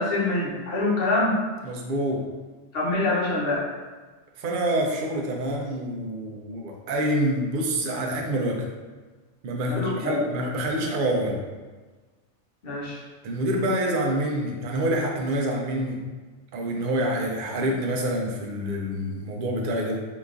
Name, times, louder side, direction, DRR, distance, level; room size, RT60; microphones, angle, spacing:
voice 1, 0.0-1.4 2.7-3.7 9.7-10.3 12.6-13.0, left 2 dB, 55° left, -5 dB, 1.0 m, -25 dB
voice 2, 1.6-2.3 4.4-8.7 9.4-11.4 13.2-16.0 16.5-20.1, right 1 dB, 60° right, 0 dB, 0.6 m, -27 dB
3.5 x 2.9 x 2.4 m, 1.3 s
omnidirectional pair, 1.2 m